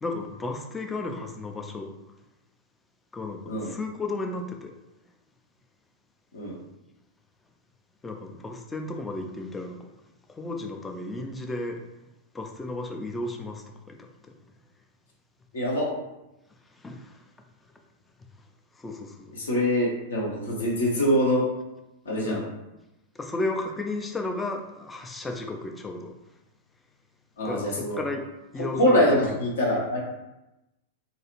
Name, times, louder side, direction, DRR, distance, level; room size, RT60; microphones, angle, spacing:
voice 1, 0.0-1.9 3.1-4.7 8.0-9.9 10.3-11.8 12.3-14.1 16.8-17.2 18.8-19.3 22.3-22.5 23.2-26.1 27.4-28.3 28.5-29.4, left 2 dB, 15° left, 3 dB, 0.4 m, -34 dB
voice 2, 15.5-15.9 19.3-21.5 22.0-22.4 27.4-28.0 28.8-30.0, equal, 70° left, -3 dB, 0.8 m, -24 dB
2.6 x 2.3 x 2.9 m, 0.95 s
figure-of-eight pair, 95°, 0 cm